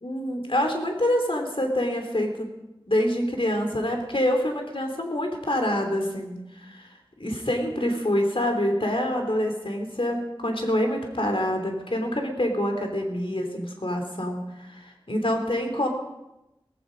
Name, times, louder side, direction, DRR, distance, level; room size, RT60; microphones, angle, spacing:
voice 1, 0.0-2.5 2.9-6.9 7.2-15.9, left 1 dB, 70° left, 3 dB, 3.1 m, -26 dB
17.5 x 15.5 x 5.2 m, 0.93 s
wide cardioid pair, 45°, 9 cm